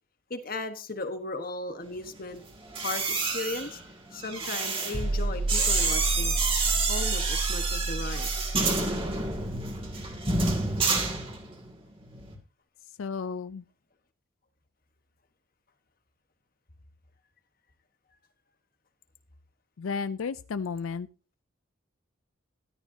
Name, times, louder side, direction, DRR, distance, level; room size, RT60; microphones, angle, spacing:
voice 1, 0.3-2.4 2.8-3.8 4.1-6.3 6.9-8.6, left 2 dB, 45° left, 8 dB, 1.3 m, -36 dB
sound 1, 2.6-11.7 12.0-12.3, right 3 dB, 25° right, 2.4 m, -29 dB
sound 2, 4.9-10.0, right 2 dB, 85° right, 4.4 m, -31 dB
voice 2, 13.0-13.6 19.8-21.1, left 5 dB, 85° left, 14 dB, 0.4 m, -33 dB
13.5 x 12.0 x 2.8 m, 0.35 s
head